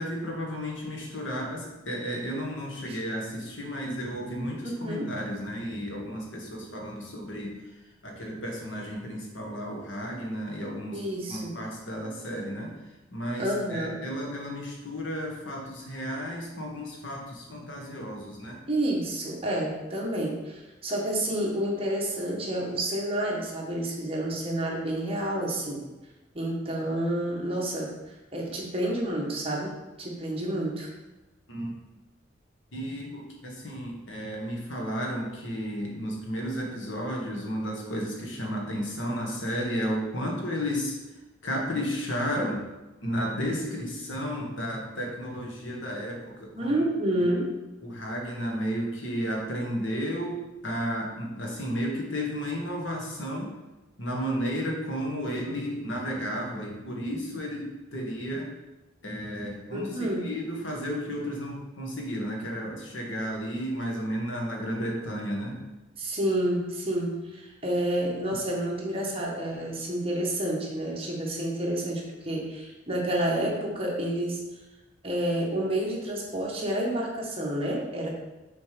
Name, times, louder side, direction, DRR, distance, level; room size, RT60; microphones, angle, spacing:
voice 1, 0.0-11.0 11.3-18.6 31.5-31.8 32.7-41.0 41.4-42.6 43.0-46.8 47.2-47.3 47.8-53.5 54.0-58.5 59.0-65.6 69.0-69.1, equal, 75° left, -1 dB, 1.7 m, -33 dB
voice 2, 4.6-5.1 10.9-11.5 13.4-14.0 18.7-25.8 26.3-27.9 28.3-30.9 46.5-47.5 59.7-60.3 66.0-74.4 75.0-78.1, right 1 dB, 30° right, -2 dB, 1.4 m, -29 dB
6.6 x 4.3 x 5.1 m, 1.1 s
head